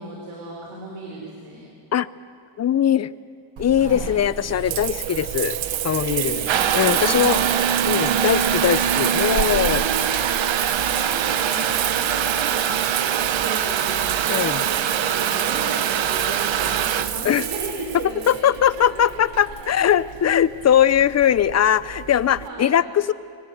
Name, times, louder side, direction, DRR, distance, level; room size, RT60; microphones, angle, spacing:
voice 1, 0.0-1.6 3.8-4.1 6.0-7.5 9.4-19.3 19.6-19.7 22.0-22.8, right 2 dB, 85° right, -2 dB, 4.1 m, -35 dB
voice 2, 2.6-3.1 3.6-5.6 5.8-6.4 6.7-7.4 7.9-9.8 14.3-14.6 17.2-17.5 18.3-23.1, left 9 dB, 35° left, 18 dB, 0.5 m, -20 dB
Water tap faucet / Bathtub (filling or washing) / Trickle dribble, 3.6-22.5, right 9 dB, 65° right, 1.0 m, -24 dB
24.5 x 17.5 x 8.0 m, 2.3 s
cardioid pair, 125°, 50 cm